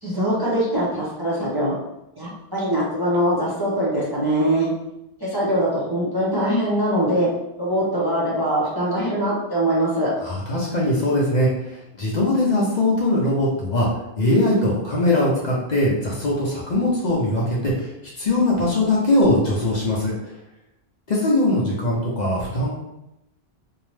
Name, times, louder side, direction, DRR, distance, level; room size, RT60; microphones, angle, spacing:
voice 1, 0.0-1.8 2.2-4.7 5.2-7.3 7.6-10.1, right 1 dB, 25° right, -7 dB, 0.6 m, -22 dB
voice 2, 10.2-13.9 14.2-17.9 18.2-20.1 21.1-22.7, left 1 dB, 50° left, -4 dB, 0.6 m, -21 dB
2.7 x 2.1 x 3.1 m, 0.87 s
omnidirectional pair, 1.0 m